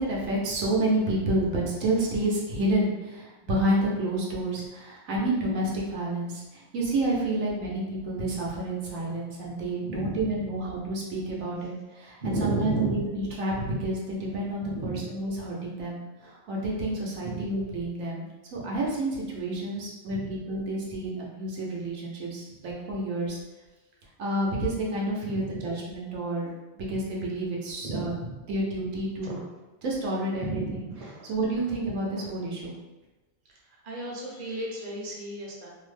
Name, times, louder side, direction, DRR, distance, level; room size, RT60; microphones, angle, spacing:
voice 1, 0.0-13.5 13.8-18.3 18.5-23.4 24.2-26.5 26.8-28.1 28.5-29.4 29.8-30.8 31.3-32.7, right 1 dB, 90° right, -4 dB, 1.1 m, -29 dB
voice 2, 9.8-10.3 12.2-13.0 14.6-15.1 17.2-17.4 20.1-20.3 25.2-25.5 27.8-28.3 29.2-29.4 30.4-31.3 33.8-35.7, right 2 dB, 50° right, -3 dB, 0.7 m, -33 dB
2.9 x 2.0 x 3.1 m, 1.1 s
omnidirectional pair, 1.4 m